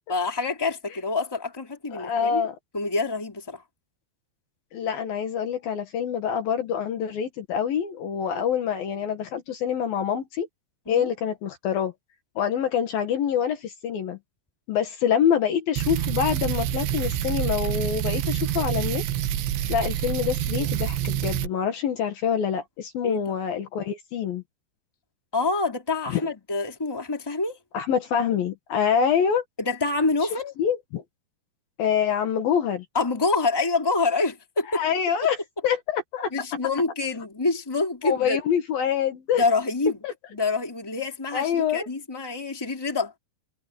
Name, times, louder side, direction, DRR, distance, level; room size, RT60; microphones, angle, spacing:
voice 1, 0.1-2.4 2.7-3.6 10.8-11.1 23.0-23.2 25.3-27.6 29.6-30.5 32.9-34.8 36.3-38.4 39.3-40.0 40.3-43.2, left 3 dB, 5° left, 2.8 m, -26 dB
voice 2, 1.9-2.5 4.7-10.5 10.9-11.9 12.4-14.2 14.7-19.0 19.7-24.4 26.1-26.2 27.7-29.4 30.6-31.0 31.8-32.8 34.7-35.4 35.6-36.3 38.0-39.4 40.0-40.1 41.3-41.9, left 8 dB, 65° left, 3.2 m, -25 dB
sound 1, 15.8-21.5, right 11 dB, 90° right, 3.6 m, -27 dB
omnidirectional pair, 4.9 m